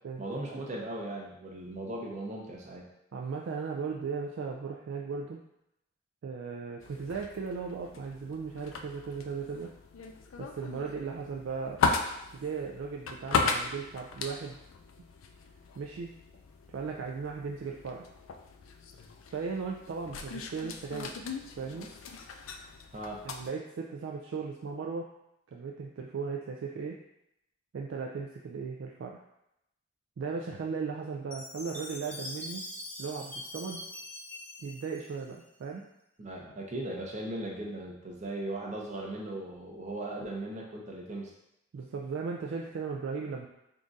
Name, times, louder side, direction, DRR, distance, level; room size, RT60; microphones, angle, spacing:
voice 1, 0.2-2.9 22.9-23.2 36.2-41.3, right 1 dB, 35° right, -2 dB, 0.7 m, -38 dB
voice 2, 3.1-5.4 6.2-9.7 10.4-11.8 12.3-14.6 15.8-16.1 16.7-18.1 19.3-21.1 21.6-21.9 23.2-25.1 25.5-27.0 27.7-29.2 30.2-32.7 33.0-33.9 34.6-35.9 41.7-43.5, right 5 dB, 70° right, 0 dB, 0.3 m, -37 dB
sound 1, 6.8-23.5, left 4 dB, 85° left, 0.4 m, -37 dB
Chime, 31.3-35.6, left 1 dB, 5° left, 0.5 m, -43 dB
3.7 x 2.4 x 3.9 m, 0.84 s
head